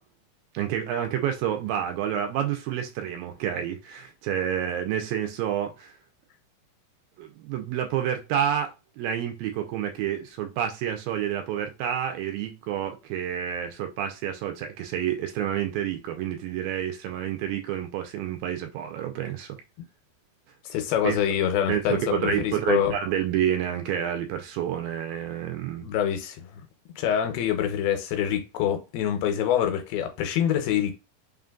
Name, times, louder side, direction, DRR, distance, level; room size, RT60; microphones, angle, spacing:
voice 1, 0.5-5.9 7.2-19.5 21.0-21.2 21.7-25.9, right 10 dB, 80° right, 2.2 m, -29 dB
voice 2, 20.7-23.0 25.8-26.6 27.0-31.0, left 9 dB, 85° left, 2.7 m, -25 dB
5.6 x 2.6 x 2.3 m
omnidirectional pair, 4.2 m